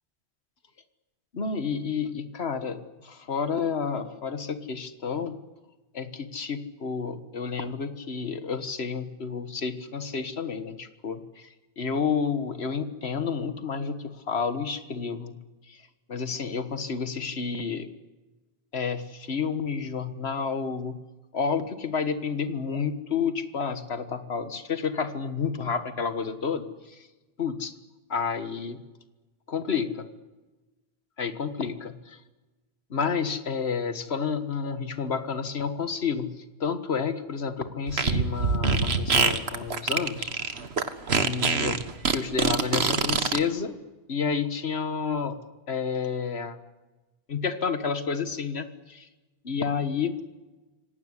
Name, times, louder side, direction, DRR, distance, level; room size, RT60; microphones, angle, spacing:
voice 1, 1.3-5.4 5.9-11.5 11.8-15.4 15.7-15.8 16.1-17.9 18.7-21.0 21.3-27.1 27.4-27.7 28.1-28.8 29.5-30.1 31.2-32.2 32.9-36.3 36.6-40.3 41.2-41.8 42.1-43.8 44.1-45.4 45.7-46.6 47.3-49.1 49.4-50.2, left 6 dB, 80° left, 10 dB, 1.8 m, -30 dB
Fart, 37.9-43.4, right 4 dB, 80° right, 1.7 m, -24 dB
26.5 x 18.0 x 9.8 m, 1.2 s
omnidirectional pair, 1.1 m